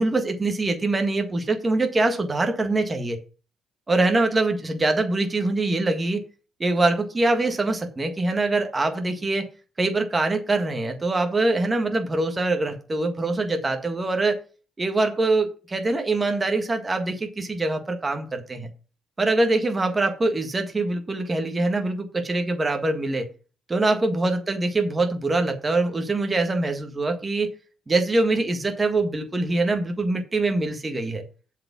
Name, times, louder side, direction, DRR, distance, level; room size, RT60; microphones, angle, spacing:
voice 1, 0.0-3.2 3.9-6.2 6.6-9.5 9.8-14.4 14.8-18.7 19.2-23.3 23.7-27.5 27.9-31.2, right 2 dB, 25° right, 5 dB, 1.6 m, -24 dB
7.6 x 5.0 x 7.3 m, 0.35 s
cardioid pair, 90°, 0 cm